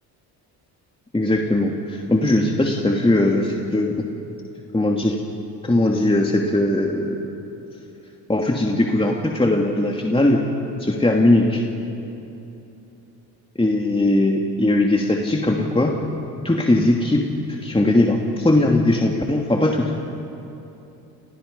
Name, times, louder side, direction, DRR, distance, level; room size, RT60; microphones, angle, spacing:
voice 1, 1.1-3.9 4.7-5.2 5.6-7.3 8.3-10.4 10.8-11.6 13.6-15.9 16.4-17.2 17.5-20.1, left 1 dB, 10° left, 0 dB, 2.7 m, -19 dB
30.0 x 27.5 x 5.6 m, 2.9 s
hypercardioid pair, 60°, 47 cm